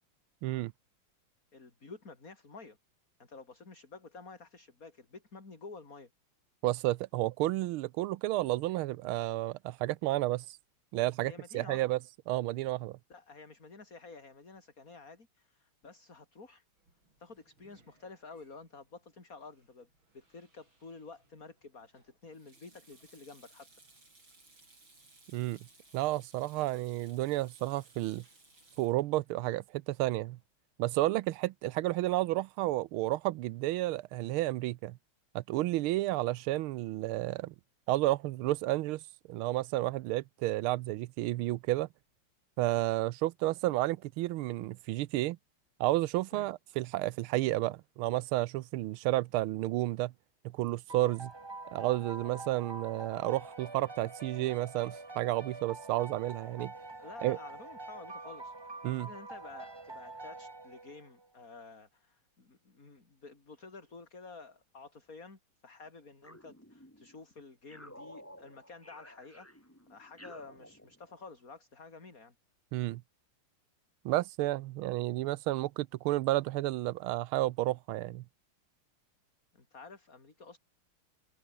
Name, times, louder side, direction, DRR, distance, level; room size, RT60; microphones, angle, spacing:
voice 1, 0.4-0.7 6.6-10.6 10.9-12.0 12.3-13.0 25.3-25.6 25.9-28.2 28.8-30.4 30.8-35.0 35.3-37.5 37.9-39.0 39.3-41.9 42.6-45.4 45.8-50.1 50.4-51.3 51.7-56.7 57.2-57.4 58.8-59.1 72.7-73.0 74.0-78.2, right 17 dB, 80° right, 1.4 m, -31 dB
voice 2, 1.5-2.8 3.2-6.1 11.2-11.9 13.1-16.6 17.2-19.9 20.1-23.7 26.5-26.7 46.3-46.5 57.0-69.5 69.9-72.3 79.5-80.6, left 4 dB, 40° left, 4.3 m, -51 dB
Sink (filling or washing), 16.8-30.5, right 2 dB, 65° right, 8.8 m, -63 dB
sound 1, 50.9-61.3, right 3 dB, 20° right, 0.8 m, -46 dB
sound 2, 66.2-67.2 67.7-71.3, equal, 5° left, 6.4 m, -53 dB
omnidirectional pair, 2.4 m